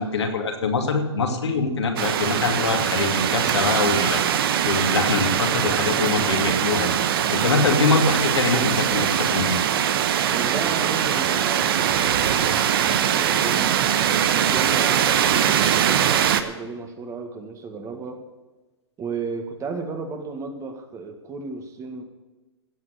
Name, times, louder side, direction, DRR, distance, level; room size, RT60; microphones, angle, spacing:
voice 1, 0.0-4.2 4.6-7.0 7.3-9.6, left 4 dB, 80° left, 2 dB, 2.6 m, -23 dB
sound 1, 2.0-16.4, right 9 dB, 60° right, 1.1 m, -22 dB
voice 2, 7.4-7.8 10.3-18.2 19.0-22.0, right 4 dB, 20° right, 6 dB, 1.8 m, -34 dB
16.5 x 6.1 x 8.3 m, 1.2 s
hypercardioid pair, 120°, 14 cm